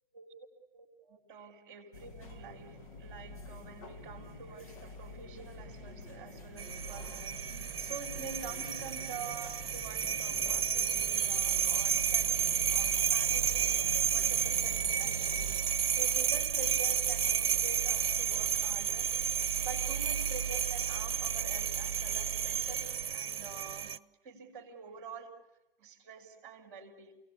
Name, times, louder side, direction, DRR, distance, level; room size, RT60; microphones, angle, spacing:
voice 1, 0.1-0.5 0.7-13.7 14.1-15.5 16.0-19.1 19.6-25.3 25.8-27.1, right 5 dB, 30° right, 4 dB, 4.3 m, -47 dB
sound 1, 1.9-15.6, left 3 dB, 40° left, 2.1 m, -48 dB
sound 2, 6.6-24.0, right 7 dB, 80° right, 0.8 m, -31 dB
28.5 x 18.5 x 8.6 m, 1.0 s
hypercardioid pair, 160°, 29 cm